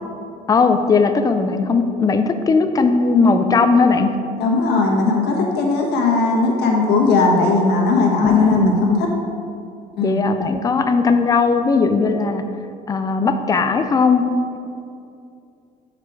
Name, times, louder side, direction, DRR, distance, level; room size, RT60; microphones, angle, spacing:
voice 1, 0.5-4.1 8.2-8.8 10.0-12.4 12.9-14.2, left 4 dB, 20° left, 8 dB, 0.4 m, -17 dB
voice 2, 4.4-9.0 10.0-10.2, left 3 dB, 80° left, -1 dB, 1.4 m, -18 dB
6.6 x 5.0 x 4.7 m, 2.5 s
cardioid pair, 110°, 17 cm